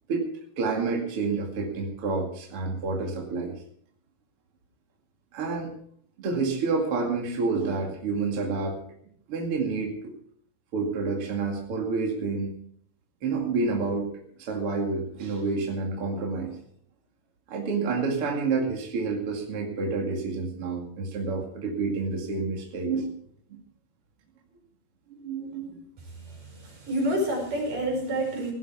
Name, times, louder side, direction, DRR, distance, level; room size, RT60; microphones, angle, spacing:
voice 1, 0.6-3.5 5.3-5.7 6.2-8.8 9.3-10.1 10.7-12.5 13.2-14.1 14.4-16.6 17.5-23.1 23.5-23.6 25.1-25.8, right 4 dB, 45° right, 0 dB, 3.0 m, -29 dB
voice 2, 26.2-28.5, right 1 dB, 80° right, 1 dB, 6.9 m, -29 dB
17.0 x 13.0 x 4.8 m, 0.63 s
omnidirectional pair, 3.8 m